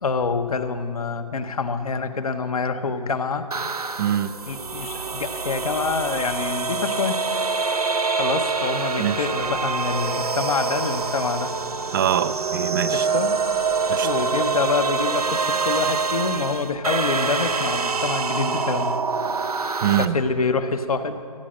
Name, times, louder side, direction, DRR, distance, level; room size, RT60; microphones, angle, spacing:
voice 1, 0.0-3.9 4.5-7.2 8.1-11.5 12.9-13.4 14.0-18.9 20.0-21.2, left 4 dB, 75° left, 7 dB, 1.1 m, -26 dB
sound 1, 3.5-20.1, right 4 dB, 90° right, 0.8 m, -25 dB
voice 2, 4.0-4.3 9.0-9.2 11.9-13.1 13.9-14.1 19.8-20.2, right 10 dB, 35° right, 14 dB, 0.4 m, -23 dB
16.0 x 9.3 x 6.4 m, 2.3 s
figure-of-eight pair, 135°, 19 cm